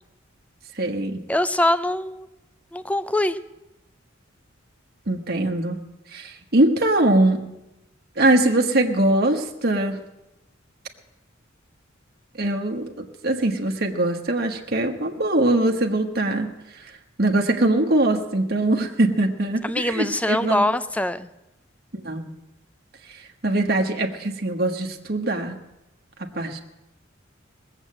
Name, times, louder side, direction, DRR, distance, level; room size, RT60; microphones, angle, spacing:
voice 1, 0.8-1.2 5.1-5.8 6.1-7.4 8.2-10.0 12.4-12.9 13.2-16.5 16.7-16.9 17.2-20.6 21.9-22.3 23.1-25.6 26.2-26.6, right 1 dB, 50° right, 3 dB, 1.3 m, -22 dB
voice 2, 1.3-2.3 2.7-3.4 19.6-21.3, left 1 dB, 5° left, 13 dB, 0.5 m, -23 dB
19.5 x 8.1 x 7.6 m, 0.93 s
head